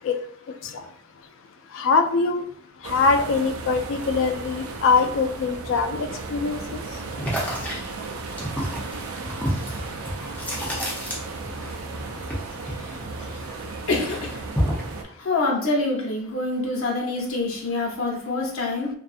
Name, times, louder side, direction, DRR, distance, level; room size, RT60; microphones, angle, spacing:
voice 1, 1.7-2.5 2.8-6.8, left 4 dB, 70° left, 8 dB, 0.3 m, -23 dB
sound 1, 2.8-15.0, right 3 dB, 85° right, 0.4 m, -35 dB
sound 2, 7.2-11.7 12.0-13.6 13.9-14.9, equal, 10° left, 0.6 m, -29 dB
voice 2, 13.9-14.3 15.2-18.9, left 2 dB, 85° left, -2 dB, 0.8 m, -26 dB
2.6 x 2.3 x 2.4 m, 0.64 s
head